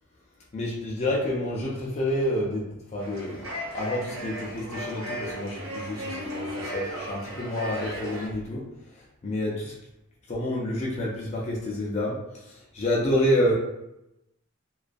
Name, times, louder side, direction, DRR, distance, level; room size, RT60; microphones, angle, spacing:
voice 1, 0.5-3.4 3.7-8.7 9.2-9.7 10.3-13.5, left 1 dB, 35° left, -4 dB, 0.4 m, -28 dB
sound 1, 3.0-8.3, equal, 90° right, 0.7 m, -36 dB
2.3 x 2.2 x 2.5 m, 0.87 s
head